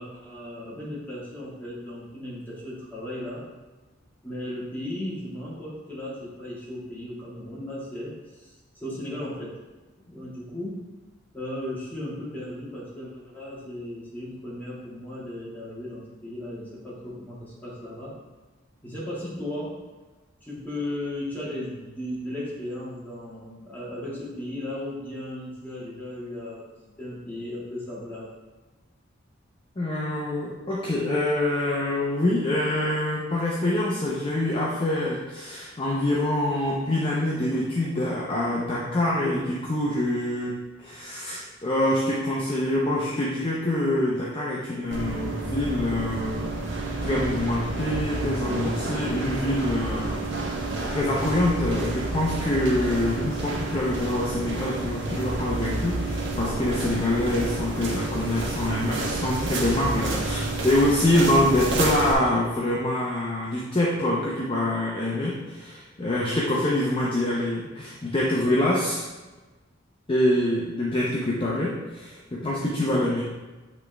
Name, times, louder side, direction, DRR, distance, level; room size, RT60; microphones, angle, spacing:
voice 1, 0.0-3.5 4.2-9.6 10.1-11.0 11.3-18.2 18.8-19.8 20.4-28.3, left 1 dB, 10° left, -8 dB, 1.9 m, -36 dB
voice 2, 29.8-50.2 50.9-69.0 70.1-73.2, left 1 dB, 25° left, -5 dB, 0.7 m, -25 dB
sound 1, 44.9-62.1, right 2 dB, 65° right, 1.1 m, -29 dB
8.3 x 3.5 x 3.3 m, 1.2 s
head